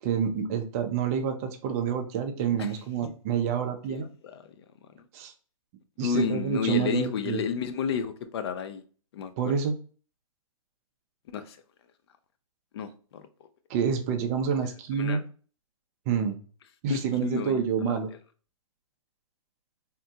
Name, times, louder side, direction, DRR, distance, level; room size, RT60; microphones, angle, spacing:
voice 1, 0.0-4.1 5.1-5.3 6.0-7.4 9.4-9.7 13.7-15.2 16.1-16.4 16.8-18.1, right 7 dB, 25° right, 0.4 m, -28 dB
voice 2, 3.9-4.4 4.9-5.0 6.0-8.8 9.1-9.5 11.3-11.6 12.7-13.2 15.0-15.2 16.9-18.0, left 6 dB, 45° left, 0.4 m, -31 dB
3.6 x 2.2 x 2.7 m
hypercardioid pair, 145°, 18 cm